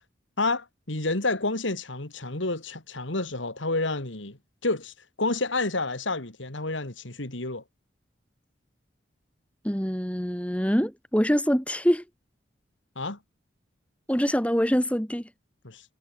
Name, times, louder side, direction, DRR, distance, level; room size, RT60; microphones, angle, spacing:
voice 1, 0.4-4.4 4.6-7.6 13.0-13.2 15.6-15.8, left 2 dB, 80° left, 3.0 m, -29 dB
voice 2, 9.6-12.0 14.1-15.3, equal, 5° left, 4.6 m, -24 dB
head